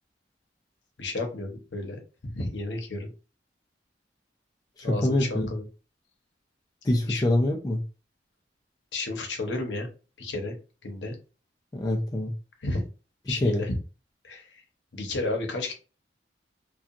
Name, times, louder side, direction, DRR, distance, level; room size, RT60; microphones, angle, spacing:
voice 1, 1.0-3.1 4.8-5.7 7.1-7.2 8.9-9.9 10.2-10.6 10.8-11.2 12.6-12.8 13.3-13.8 14.2-14.6 14.9-15.7, left 2 dB, 85° left, 0.7 m, -32 dB
voice 2, 4.8-5.5 6.8-7.8 11.7-12.3 13.3-13.7, left 1 dB, 20° left, 0.4 m, -25 dB
2.7 x 2.3 x 2.4 m
head